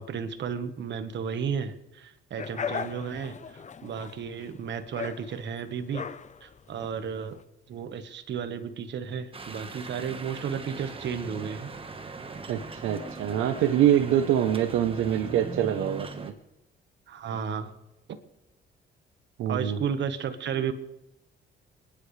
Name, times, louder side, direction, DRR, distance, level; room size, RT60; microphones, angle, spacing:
voice 1, 0.0-6.1 6.4-7.4 7.7-11.7 17.1-17.7 19.5-20.7, right 7 dB, 65° right, 9 dB, 1.4 m, -33 dB
sound 1, 2.4-7.4, left 6 dB, 35° left, 0.9 m, -38 dB
sound 2, 9.3-16.3, right 4 dB, 25° right, 1.4 m, -40 dB
voice 2, 12.5-16.3 19.4-19.8, right 10 dB, 90° right, 8 dB, 0.9 m, -25 dB
29.5 x 10.5 x 3.3 m, 0.92 s
cardioid pair, 90°, 20 cm